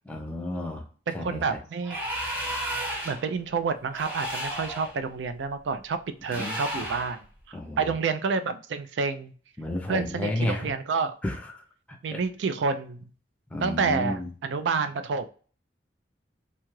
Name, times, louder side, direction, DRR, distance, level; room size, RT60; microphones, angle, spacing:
voice 1, 0.1-0.8 1.1-1.6 6.3-6.9 7.5-7.9 9.6-10.7 11.2-11.6 12.1-12.2 13.5-14.3, left 1 dB, 10° left, 2 dB, 0.5 m, -32 dB
voice 2, 1.1-2.0 3.0-9.3 9.9-11.2 12.0-13.1 13.6-15.3, right 5 dB, 80° right, 10 dB, 0.4 m, -29 dB
sound 1, 1.8-3.3 3.9-4.9 6.3-7.2, right 1 dB, 10° right, 1.0 m, -33 dB
2.7 x 2.3 x 3.0 m, 0.40 s
head